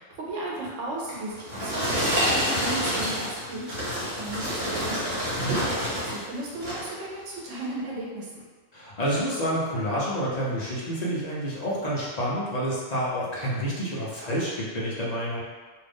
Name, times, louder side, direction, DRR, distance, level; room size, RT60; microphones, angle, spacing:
voice 1, 0.0-5.1 5.7-8.4, right 1 dB, 85° right, -4 dB, 1.1 m, -35 dB
sound 1, 1.1-6.2 6.5-7.0 7.5-7.7, equal, 65° right, 1.4 m, -28 dB
voice 2, 8.7-15.4, equal, 40° left, -7 dB, 0.6 m, -28 dB
2.6 x 2.5 x 3.5 m, 1.4 s
omnidirectional pair, 1.3 m